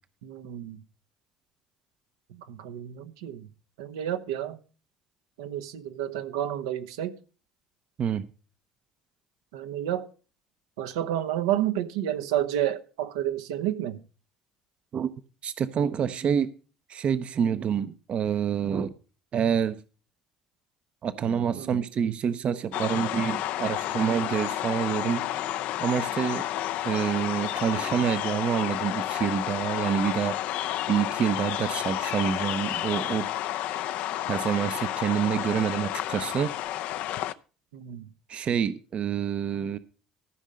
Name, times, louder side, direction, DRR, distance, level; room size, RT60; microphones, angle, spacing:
voice 1, 0.2-0.8 2.3-3.5 3.8-4.6 5.4-7.2 9.5-10.1 10.8-14.0 21.5-21.8 37.7-38.1, right 11 dB, 80° right, 9 dB, 1.0 m, -30 dB
voice 2, 15.4-16.5 16.9-18.9 19.3-19.8 21.0-25.2 25.8-26.4 26.8-33.3 33.8-33.9 34.2-36.5 38.3-39.8, right 8 dB, 50° right, 13 dB, 0.8 m, -27 dB
sound 1, 22.7-37.3, left 13 dB, 70° left, 0.6 m, -31 dB
14.0 x 5.4 x 6.4 m, 0.37 s
hypercardioid pair, 65°, 2 cm